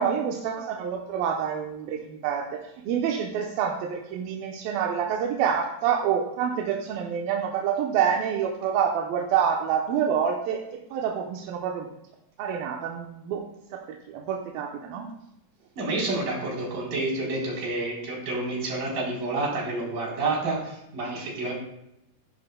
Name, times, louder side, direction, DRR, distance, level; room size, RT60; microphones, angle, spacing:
voice 1, 0.0-11.9 12.4-13.5 13.7-15.1, right 8 dB, 90° right, 1 dB, 2.7 m, -27 dB
voice 2, 15.8-21.5, right 2 dB, 70° right, -4 dB, 5.2 m, -29 dB
15.5 x 10.5 x 2.2 m, 0.84 s
omnidirectional pair, 4.1 m